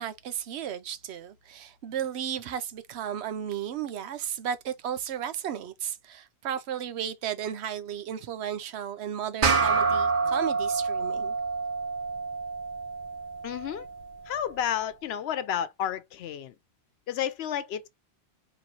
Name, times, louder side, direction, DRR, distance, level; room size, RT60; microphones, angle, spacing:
voice 1, 0.0-11.3, right 9 dB, 80° right, 0.9 m, -34 dB
sound 1, 9.4-14.2, right 4 dB, 55° right, 0.9 m, -28 dB
voice 2, 13.4-13.9 14.2-16.6 17.1-17.9, left 10 dB, 75° left, 0.8 m, -31 dB
3.0 x 3.0 x 3.9 m
omnidirectional pair, 1.1 m